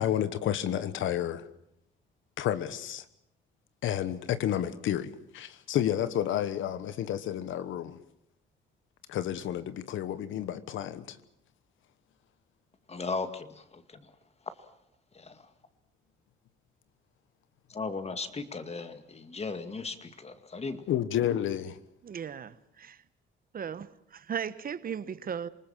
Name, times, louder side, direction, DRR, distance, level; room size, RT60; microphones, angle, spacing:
voice 1, 0.0-1.5 2.4-3.0 3.8-8.0 9.1-11.2 20.9-21.8, left 11 dB, 80° left, 1.2 m, -30 dB
voice 2, 12.9-14.1 15.1-15.5 17.7-20.9, left 4 dB, 30° left, 2.2 m, -37 dB
voice 3, 22.0-23.0 23.5-25.5, right 7 dB, 45° right, 1.1 m, -37 dB
27.0 x 19.5 x 7.4 m
cardioid pair, 90°, 20 cm